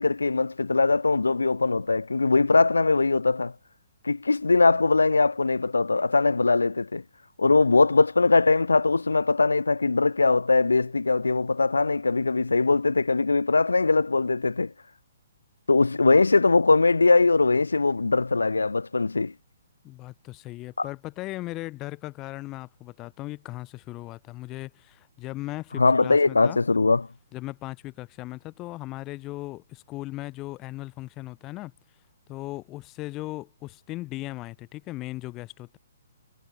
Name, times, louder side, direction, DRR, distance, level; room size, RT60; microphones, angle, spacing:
voice 1, 0.0-3.5 4.0-7.0 7.4-14.7 15.7-19.3 25.8-27.1, left 3 dB, 75° left, 1.3 m, -21 dB
voice 2, 19.8-26.6 27.3-31.7 32.3-35.8, left 18 dB, 25° left, 5.6 m, -37 dB
figure-of-eight pair, 125°, 0 cm